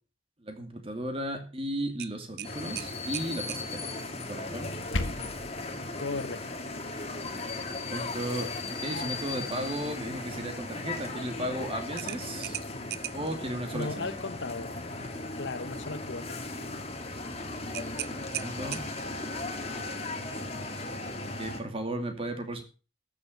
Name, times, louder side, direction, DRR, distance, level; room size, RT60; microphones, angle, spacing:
voice 1, 0.4-4.7 7.7-12.6 13.1-14.1 18.4-18.8 21.4-22.6, right 1 dB, 30° right, 2.4 m, -35 dB
sound 1, 2.0-3.7 6.3-6.5 6.9-7.0 12.0-13.4 17.7-19.2, right 14 dB, 55° right, 0.5 m, -39 dB
sound 2, 2.4-21.6, left 2 dB, 35° left, 1.8 m, -37 dB
sound 3, 4.5-5.5, left 2 dB, 90° left, 1.4 m, -34 dB
voice 2, 6.0-6.9 13.7-14.7 15.4-16.4, left 3 dB, 70° left, 1.0 m, -36 dB
13.5 x 7.0 x 6.6 m
head